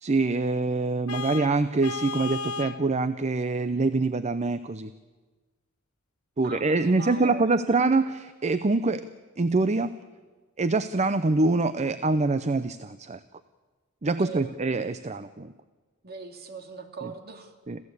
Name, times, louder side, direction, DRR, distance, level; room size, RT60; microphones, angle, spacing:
voice 1, 0.0-4.9 6.4-9.0 9.4-9.9 10.6-13.2 14.0-15.5 17.7-17.8, right 3 dB, 30° right, 13 dB, 0.6 m, -25 dB
Vehicle horn car horn honking, 1.1-2.8, left 4 dB, 80° left, 1.1 m, -34 dB
voice 2, 6.4-7.5 14.1-14.5 16.0-17.5, right 3 dB, 45° right, 5 dB, 2.3 m, -40 dB
27.0 x 15.5 x 8.3 m, 1.3 s
head